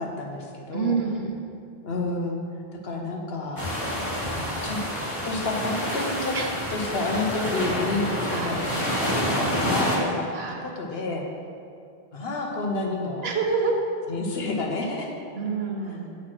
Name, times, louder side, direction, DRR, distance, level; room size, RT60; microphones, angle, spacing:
voice 1, 0.0-1.0 1.8-2.4 2.7-3.6 4.3-4.8 5.2-6.4 6.7-11.3 12.1-13.3 14.1-15.1 16.0-16.1, left 2 dB, 75° left, 1 dB, 1.3 m, -30 dB
voice 2, 0.7-1.3 6.3-6.5 8.3-8.6 10.3-10.6 13.2-13.7 15.4-16.0, right 5 dB, 80° right, 1 dB, 1.2 m, -27 dB
sound 1, 3.6-10.0, equal, 30° left, 1.6 m, -28 dB
9.1 x 4.3 x 6.1 m, 2.4 s
omnidirectional pair, 1.0 m